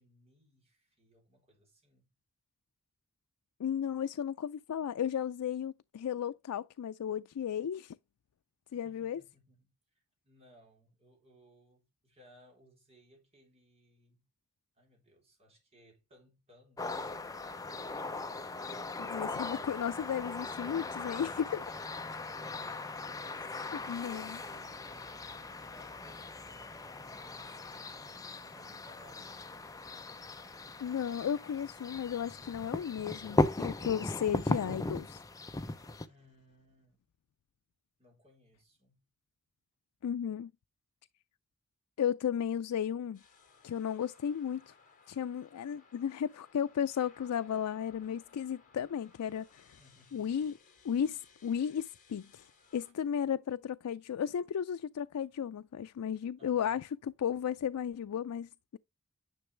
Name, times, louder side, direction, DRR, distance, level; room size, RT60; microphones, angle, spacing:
voice 1, 0.0-2.1 8.7-14.3 14.7-17.4 23.2-29.3 36.1-37.0 38.0-39.0 49.8-50.5 56.4-56.8, equal, 30° right, 3.7 m, -63 dB
voice 2, 3.6-8.0 8.7-9.2 19.0-21.4 23.9-24.4 30.8-35.2 40.0-40.5 42.0-43.2 43.6-44.7 45.1-49.8 50.1-50.5 50.8-52.5 52.7-56.9 57.2-58.8, left 8 dB, 90° left, 0.4 m, -34 dB
sound 1, 16.8-36.1, left 2 dB, 15° left, 0.5 m, -38 dB
sound 2, 43.1-52.9, left 5 dB, 35° left, 2.3 m, -62 dB
10.0 x 5.9 x 3.3 m
head